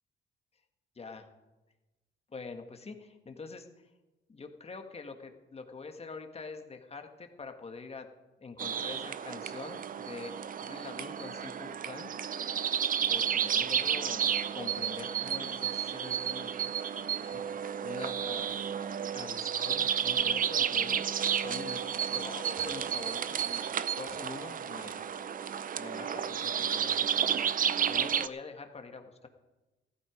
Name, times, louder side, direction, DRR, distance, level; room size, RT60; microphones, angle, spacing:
voice 1, 1.0-1.3 2.3-3.9 4.3-8.1 8.4-12.6 13.1-16.5 17.2-18.6 19.1-21.1 21.4-23.7 24.0-25.0 25.8-29.3, left 4 dB, 30° left, 5 dB, 1.7 m, -45 dB
sound 1, 8.6-28.3, right 8 dB, 45° right, 0.6 m, -32 dB
15.0 x 13.0 x 5.1 m, 1.1 s
cardioid pair, 90°, 20 cm